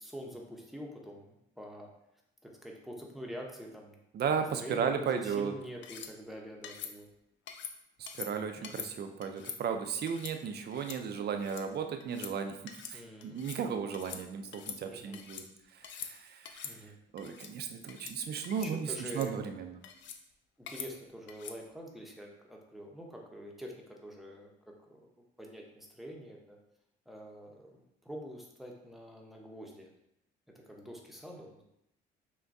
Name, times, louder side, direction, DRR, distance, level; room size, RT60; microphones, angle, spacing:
voice 1, 0.0-1.9 2.4-4.0 4.6-7.1 8.6-8.8 12.9-13.4 14.8-15.2 16.6-16.9 17.9-18.0 18.6-19.4 20.6-25.1 25.4-26.6 27.1-29.9 30.5-31.6, equal, ahead, -1 dB, 0.8 m, -46 dB
voice 2, 4.1-5.5 8.0-12.6 12.9-15.4 15.7-16.8 17.1-19.7, right 6 dB, 55° right, 6 dB, 0.5 m, -35 dB
sound 1, 5.8-6.1 6.6-6.9 7.5-7.7 8.1-8.3 8.6-8.9 9.2-9.6 10.1-10.3 10.7-11.0 11.3-11.6 12.0-12.3 12.7-13.0 13.2-13.6 13.9-14.2 14.5-15.5 15.8-16.1 16.5-16.7 17.2-17.5 17.9-18.2 18.4-18.7 19.0-19.3 19.8-20.2 20.7-20.9 21.3-21.6, left 8 dB, 70° left, 0.5 m, -44 dB
5.8 x 2.2 x 2.6 m, 0.81 s
cardioid pair, 90°, 20 cm